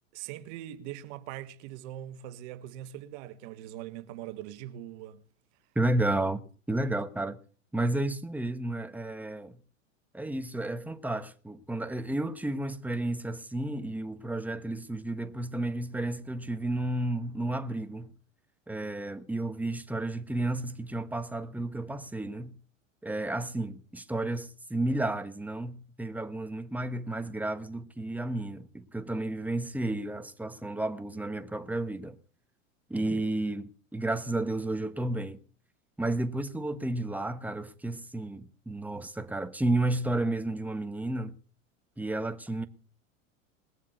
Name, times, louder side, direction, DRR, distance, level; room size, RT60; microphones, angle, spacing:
voice 1, 0.1-5.2, right 12 dB, 55° right, 1.5 m, -42 dB
voice 2, 5.7-6.4 6.7-7.4 7.7-9.6 10.1-18.1 18.7-22.5 23.0-32.2 32.9-35.4 36.0-41.3 42.0-42.7, right 2 dB, 5° right, 1.3 m, -32 dB
20.5 x 7.4 x 8.0 m
hypercardioid pair, 100°, 40 cm